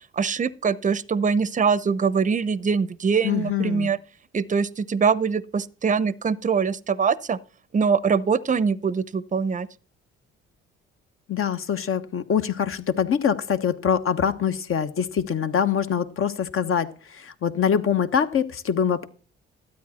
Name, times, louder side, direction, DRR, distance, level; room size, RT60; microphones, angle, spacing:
voice 1, 0.1-4.0 4.3-7.4 7.7-9.7, right 5 dB, 25° right, 0.7 m, -23 dB
voice 2, 3.2-3.9 11.3-19.1, left 8 dB, 45° left, 1.2 m, -24 dB
13.0 x 8.7 x 4.2 m
hypercardioid pair, 55°, 30 cm